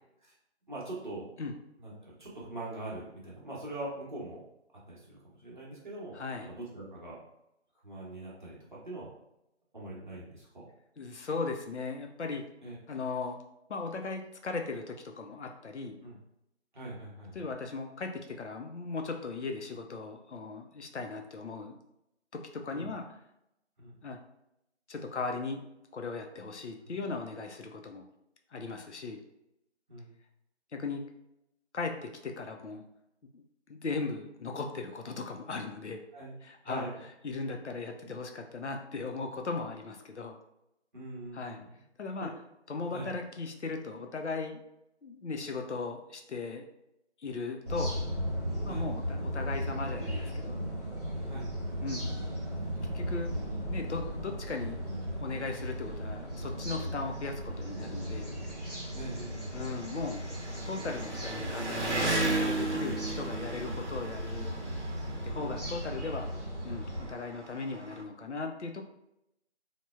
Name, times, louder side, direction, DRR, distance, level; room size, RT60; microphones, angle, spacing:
voice 1, 0.7-1.3 1.8-4.4 4.9-7.2 7.8-9.1 9.7-10.6 12.6-12.7 16.0-16.2 16.7-17.3 22.7-22.9 23.8-23.9 26.8-26.9 29.9-30.1 36.1-36.3 36.6-37.0 40.9-41.7 42.2-42.3 42.9-43.1 48.6-48.9 51.3-51.5 58.9-59.9 65.3-65.5, right 2 dB, 45° right, -6 dB, 0.8 m, -42 dB
voice 2, 6.1-6.5 11.0-12.4 12.9-13.4 13.7-16.0 17.3-21.7 22.3-23.0 24.0-24.2 24.9-25.6 25.9-28.0 28.5-29.2 30.7-31.0 31.7-32.8 33.3-33.4 33.7-36.0 36.4-36.9 37.2-40.3 41.3-41.6 42.0-42.3 42.7-44.6 45.0-46.6 47.2-47.9 48.6-50.6 51.8-52.0 52.9-53.3 53.7-54.8 55.2-58.3 59.5-60.2 60.7-64.5 65.2-66.3 66.6-68.8, left 4 dB, 75° left, 4 dB, 0.5 m, -37 dB
sound 1, 47.7-67.1, equal, 35° left, 0.9 m, -36 dB
Engine, 53.5-53.6 53.9-54.0 55.0-55.1 55.3-68.0, right 2 dB, 75° right, 0.7 m, -37 dB
3.2 x 2.1 x 2.2 m, 0.84 s
figure-of-eight pair, 160°, 35 cm